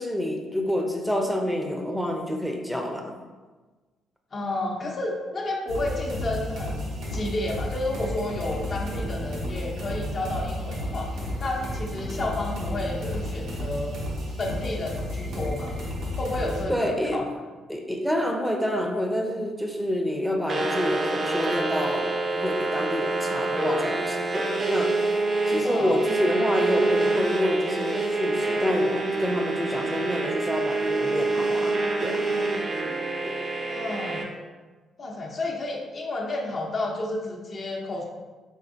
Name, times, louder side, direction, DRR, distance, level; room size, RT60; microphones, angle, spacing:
voice 1, 0.0-3.1 16.7-17.2 17.7-25.0 25.5-32.3 33.2-33.4, equal, ahead, 2 dB, 0.6 m, -28 dB
voice 2, 4.3-11.1 11.4-14.0 14.4-15.8 16.2-17.2 25.6-26.0 33.7-34.3 35.0-38.1, left 2 dB, 45° left, -1 dB, 0.7 m, -31 dB
sound 1, 5.7-16.6, left 1 dB, 80° right, 0.9 m, -32 dB
sound 2, 20.5-34.2, right 2 dB, 45° right, 0.6 m, -26 dB
4.4 x 3.3 x 2.6 m, 1.3 s
cardioid pair, 90°, 0 cm